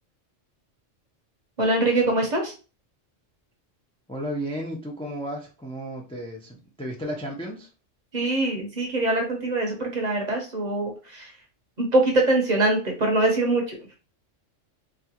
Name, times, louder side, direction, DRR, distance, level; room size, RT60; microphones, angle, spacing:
voice 1, 1.6-2.5 8.1-11.3 11.8-13.8, right 2 dB, 40° right, 0.8 m, -23 dB
voice 2, 4.1-7.7, equal, 10° left, 0.4 m, -33 dB
4.1 x 2.4 x 2.8 m
omnidirectional pair, 1.3 m